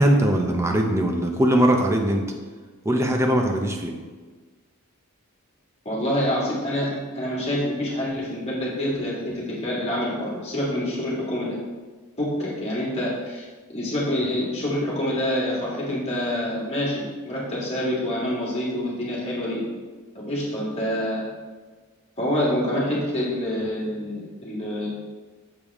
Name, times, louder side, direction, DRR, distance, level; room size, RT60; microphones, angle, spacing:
voice 1, 0.0-2.3 2.8-3.9, right 1 dB, 15° right, 2 dB, 0.6 m, -20 dB
voice 2, 5.9-11.6 12.2-13.4 13.7-19.6 20.1-21.2 22.2-24.9, left 1 dB, 30° left, -7 dB, 2.0 m, -26 dB
7.0 x 5.1 x 3.6 m, 1.4 s
head